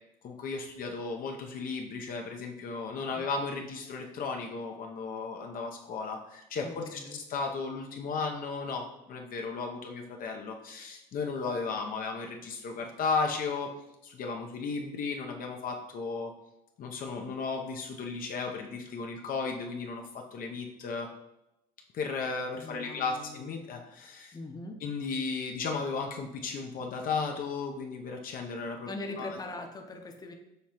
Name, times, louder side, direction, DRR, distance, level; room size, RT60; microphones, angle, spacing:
voice 1, 0.2-13.7 14.0-16.3 16.8-21.1 21.9-24.4 24.8-28.9 29.2-29.3, left 4 dB, 55° left, 2 dB, 0.6 m, -35 dB
voice 2, 6.6-7.2 22.6-23.5 24.3-24.8 28.9-30.3, left 2 dB, 20° left, 4 dB, 0.7 m, -41 dB
6.6 x 2.7 x 2.9 m, 0.92 s
supercardioid pair, 80°, 17 cm